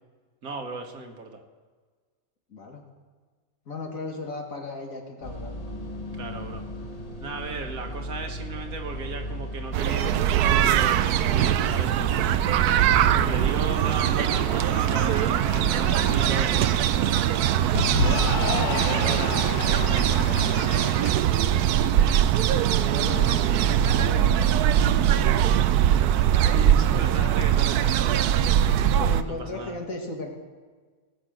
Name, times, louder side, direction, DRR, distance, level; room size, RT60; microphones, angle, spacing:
voice 1, 0.4-1.4 6.1-6.6 7.2-12.3 13.2-18.1 18.6-19.8 26.1-28.5 29.2-29.8, right 3 dB, 70° right, 4 dB, 1.9 m, -36 dB
voice 2, 2.5-2.8 3.7-5.6 13.0-13.6 18.4-19.4 21.0-21.2 21.5-22.1 22.9-24.8 26.9-27.4 29.0-30.3, left 3 dB, 65° left, 1 dB, 2.2 m, -37 dB
sound 1, 5.2-23.6, equal, 30° left, 1.0 m, -39 dB
sound 2, 9.7-29.2, right 10 dB, 90° right, 1.1 m, -22 dB
Cheering / Applause, 13.5-21.2, left 8 dB, 90° left, 1.3 m, -33 dB
18.5 x 6.2 x 7.6 m, 1.4 s
omnidirectional pair, 1.6 m